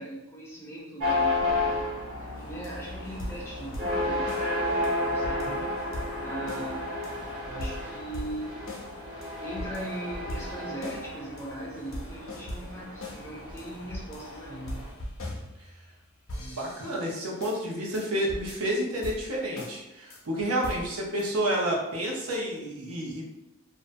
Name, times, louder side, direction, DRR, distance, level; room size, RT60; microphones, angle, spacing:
voice 1, 0.0-1.8 2.2-4.4 5.0-5.5 6.2-6.9 7.5-8.7 9.4-14.8, right 1 dB, 10° left, -4 dB, 0.5 m, -39 dB
sound 1, 1.0-14.9, left 2 dB, 60° right, 1.0 m, -32 dB
sound 2, 2.4-16.0 16.3-17.6 17.9-18.0 18.3-18.7 19.0-19.8 20.1-20.2 20.6-21.3, left 1 dB, 65° left, 0.6 m, -40 dB
voice 2, 5.3-5.7 16.4-23.3, right 1 dB, 90° right, -3 dB, 0.7 m, -30 dB
2.6 x 2.2 x 2.5 m, 0.92 s
head